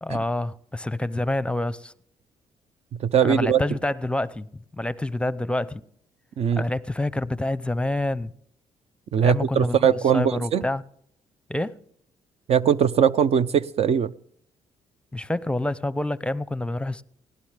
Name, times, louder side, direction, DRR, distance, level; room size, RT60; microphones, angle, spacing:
voice 1, 0.0-1.9 3.2-5.8 6.6-8.3 9.2-10.8 11.5-11.8 15.1-17.0, left 1 dB, 10° left, 0.7 m, -27 dB
voice 2, 2.9-3.6 6.4-6.6 9.1-10.6 12.5-14.1, right 8 dB, 60° right, 0.6 m, -21 dB
19.0 x 16.5 x 3.4 m
supercardioid pair, 70°, 12 cm